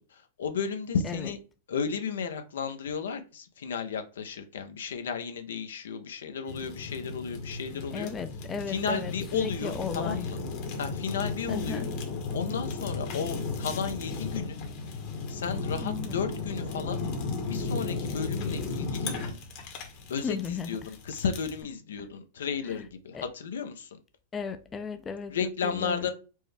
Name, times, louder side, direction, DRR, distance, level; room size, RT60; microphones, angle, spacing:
voice 1, 0.0-1.4 1.7-8.1 8.7-10.4 10.8-11.9 12.3-14.6 15.3-17.0 17.4-19.1 20.1-23.9 25.3-26.1, left 6 dB, 80° left, 0.6 m, -33 dB
Fire, 6.5-21.6, left 3 dB, 50° left, 1.1 m, -35 dB
voice 2, 7.9-10.3 11.5-11.9 15.8-16.2 20.2-20.9 22.6-22.9 23.1-23.2 24.3-26.1, left 5 dB, 20° left, 0.4 m, -36 dB
4.4 x 2.2 x 3.3 m
hypercardioid pair, 115°, 0 cm